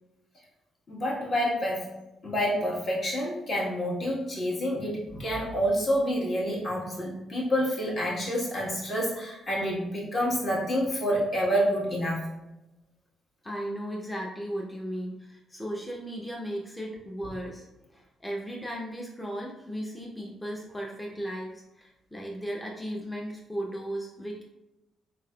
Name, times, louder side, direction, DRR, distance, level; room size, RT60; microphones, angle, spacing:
voice 1, 0.9-1.9 2.2-12.2, equal, 45° left, -5 dB, 1.3 m, -28 dB
voice 2, 13.4-24.4, equal, 10° left, -2 dB, 0.6 m, -36 dB
3.9 x 3.3 x 2.2 m, 0.98 s
cardioid pair, 90°, 0 cm